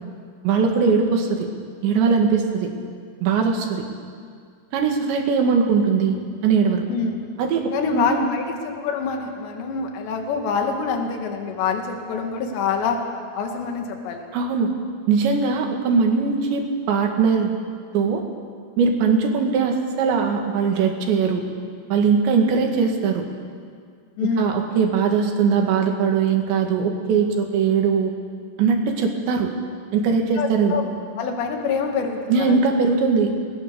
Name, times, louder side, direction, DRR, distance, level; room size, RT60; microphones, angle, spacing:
voice 1, 0.4-1.5 1.8-2.7 3.2-3.8 4.7-6.2 6.4-6.8 7.4-7.6 7.9-8.2 14.3-14.7 15.1-17.5 17.9-18.2 18.8-21.4 21.9-23.2 24.2-28.1 28.6-29.5 29.9-30.8 32.3-33.3, right 5 dB, 65° right, 3 dB, 4.1 m, -20 dB
voice 2, 6.9-7.2 7.7-13.0 13.4-14.3 24.2-24.5 30.2-30.8 31.2-32.6, left 5 dB, 65° left, 3 dB, 4.1 m, -26 dB
28.5 x 20.5 x 7.0 m, 2.1 s
omnidirectional pair, 5.8 m